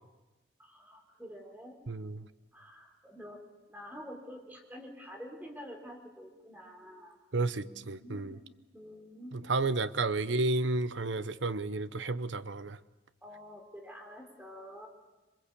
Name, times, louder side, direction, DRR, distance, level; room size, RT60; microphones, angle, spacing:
voice 1, 0.6-1.8 2.5-3.4 3.7-7.2 7.6-8.4 8.7-9.4 13.2-14.9, equal, 10° right, 2 dB, 4.1 m, -48 dB
voice 2, 1.9-2.3 7.3-8.4 9.3-12.8, right 3 dB, 70° right, 14 dB, 0.9 m, -32 dB
27.0 x 23.0 x 8.5 m, 1.1 s
head